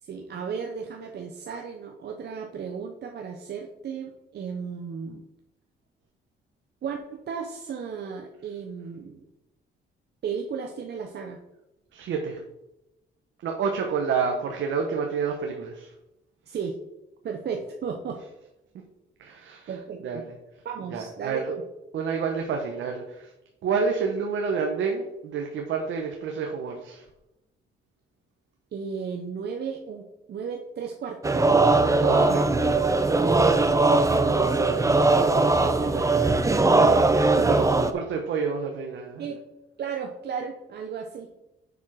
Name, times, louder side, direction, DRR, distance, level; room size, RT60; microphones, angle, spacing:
voice 1, 0.0-5.2 6.8-9.2 10.2-11.4 16.5-16.8 17.2-18.2 19.7-20.2 20.6-21.6 28.7-31.5 33.9-36.9 37.4-37.7 39.2-39.4 39.8-41.3, right 6 dB, 55° right, 3 dB, 0.9 m, -35 dB
voice 2, 11.9-12.4 13.4-15.9 19.2-19.7 20.0-20.3 20.9-21.5 21.9-23.3 23.6-27.0 32.0-32.9 35.9-36.2 37.5-37.6 37.9-39.3, right 5 dB, 75° right, 2 dB, 1.1 m, -29 dB
sound 1, 31.2-37.9, right 3 dB, 15° right, 0.7 m, -20 dB
7.2 x 5.7 x 4.7 m, 0.94 s
cardioid pair, 90°, 20 cm